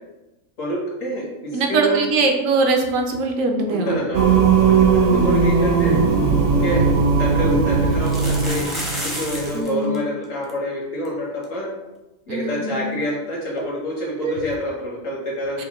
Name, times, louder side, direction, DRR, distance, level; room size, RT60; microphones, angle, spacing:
voice 1, 0.6-2.1 3.7-4.4 4.7-6.0 6.6-6.8 7.2-8.7 9.0-11.7 12.3-15.6, equal, 75° left, -4 dB, 1.5 m, -27 dB
voice 2, 1.5-4.0 5.1-5.2 9.5-10.0 12.3-13.0 14.2-14.4 15.6-15.7, right 3 dB, 80° right, 3 dB, 1.0 m, -22 dB
Singing, 4.1-9.6, right 5 dB, 55° right, 0.7 m, -18 dB
sound 1, 6.7-6.8 7.9-9.7 9.9-10.0 10.2-10.5 11.0-11.1 11.4-11.5 13.6-13.7, equal, ahead, 0.4 m, -31 dB
5.5 x 2.1 x 2.9 m, 1.0 s
omnidirectional pair, 1.4 m